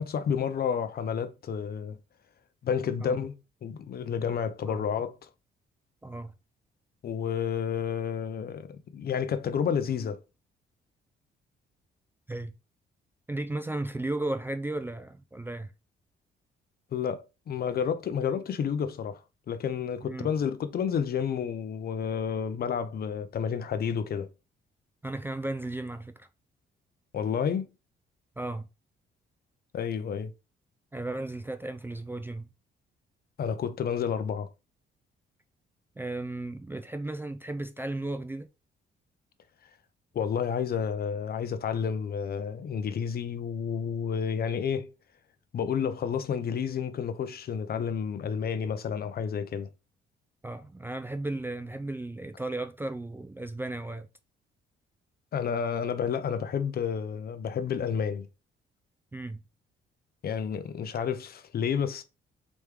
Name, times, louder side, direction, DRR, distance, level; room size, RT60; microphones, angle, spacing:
voice 1, 0.0-2.0 2.6-3.4 3.6-5.3 7.0-10.2 16.9-19.2 19.5-24.3 27.1-27.7 29.7-30.3 33.4-34.5 40.1-44.9 45.5-49.7 55.3-58.3 60.2-62.0, left 7 dB, 50° left, 0.5 m, -30 dB
voice 2, 6.0-6.3 12.3-12.5 13.3-15.7 20.0-20.3 25.0-26.3 28.4-28.7 30.9-32.5 36.0-38.5 50.4-54.1 59.1-59.4, right 2 dB, 10° right, 0.3 m, -35 dB
3.2 x 3.1 x 3.3 m
cardioid pair, 90°, 20 cm